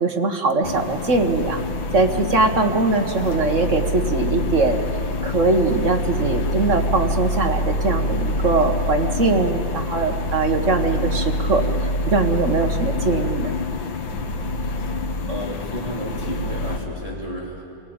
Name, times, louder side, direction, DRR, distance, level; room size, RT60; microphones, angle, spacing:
voice 1, 0.0-1.6 1.9-4.8 5.2-11.6 12.1-13.5, right 3 dB, 40° right, 4 dB, 1.7 m, -21 dB
sound 1, 0.6-16.8, left 2 dB, 75° left, 2.2 m, -26 dB
voice 2, 15.3-17.6, equal, 15° right, -3 dB, 3.2 m, -32 dB
28.0 x 18.5 x 8.8 m, 2.9 s
omnidirectional pair, 2.1 m